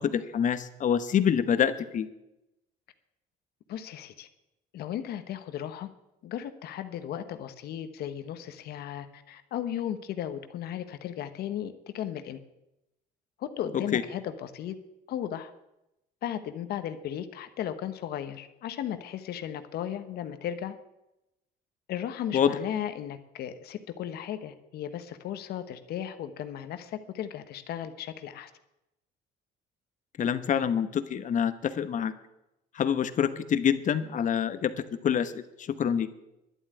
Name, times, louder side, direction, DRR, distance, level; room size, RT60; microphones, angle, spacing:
voice 1, 0.0-2.1 13.9-14.0 22.3-22.5 30.2-32.1 32.7-34.7 35.0-35.4 35.8-36.1, left 8 dB, 50° left, 12 dB, 1.1 m, -26 dB
voice 2, 3.7-4.3 4.7-5.9 6.2-12.4 13.4-14.8 15.1-15.5 16.2-20.7 21.9-28.5, left 10 dB, 70° left, 10 dB, 1.1 m, -35 dB
11.5 x 7.5 x 9.5 m, 0.90 s
cardioid pair, 110°, 17 cm